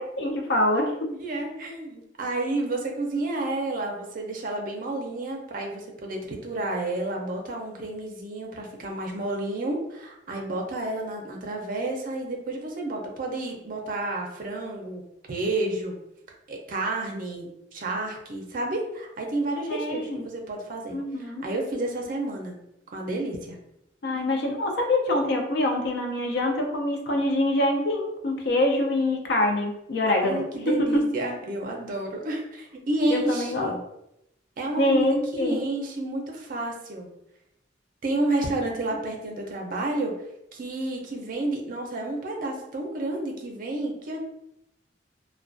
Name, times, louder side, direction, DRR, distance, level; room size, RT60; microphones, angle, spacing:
voice 1, 0.0-1.1 19.7-20.3 20.9-21.4 24.0-31.0 33.1-33.7 34.8-35.7, left 1 dB, 60° left, 2 dB, 0.4 m, -25 dB
voice 2, 1.2-15.0 15.3-16.0 16.5-22.6 22.9-23.6 30.1-33.8 34.6-35.1 35.3-37.1 38.0-40.1 40.5-44.2, right 2 dB, 45° right, 1 dB, 0.5 m, -30 dB
2.3 x 2.1 x 2.5 m, 0.84 s
head